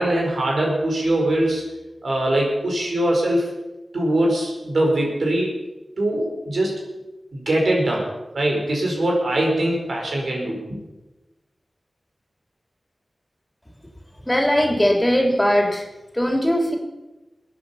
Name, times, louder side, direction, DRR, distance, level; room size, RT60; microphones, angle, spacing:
voice 1, 0.0-1.6 2.0-3.5 3.9-5.6 6.0-6.8 7.3-8.1 8.3-10.8, right 1 dB, 80° right, -1 dB, 4.6 m, -22 dB
voice 2, 14.3-15.8 16.1-16.8, equal, 15° left, 2 dB, 3.5 m, -19 dB
21.0 x 8.8 x 5.8 m, 1.1 s
cardioid pair, 40°, 0 cm